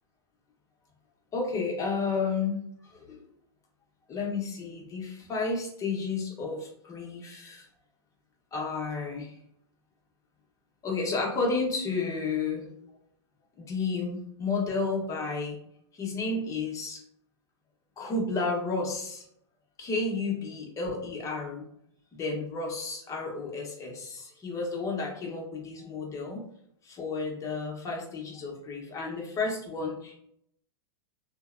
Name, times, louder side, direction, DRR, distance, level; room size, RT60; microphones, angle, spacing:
voice 1, 1.3-3.2 4.1-7.7 8.5-9.3 10.8-12.7 13.6-15.6 15.9-17.0 18.0-19.2 19.8-21.7 22.1-26.4 26.8-30.2, left 4 dB, 25° left, -1 dB, 0.8 m, -32 dB
2.7 x 2.1 x 2.4 m, 0.70 s
hypercardioid pair, 120°, 14 cm